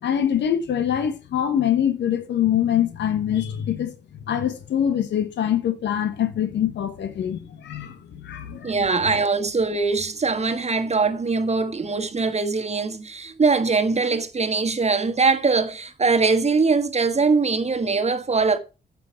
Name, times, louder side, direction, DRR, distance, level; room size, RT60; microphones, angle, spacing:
voice 1, 0.0-4.0 4.3-9.0, left 10 dB, 90° left, 1.1 m, -24 dB
voice 2, 8.6-18.6, right 4 dB, 40° right, 1.6 m, -22 dB
9.8 x 6.8 x 5.7 m
cardioid pair, 65°, 18 cm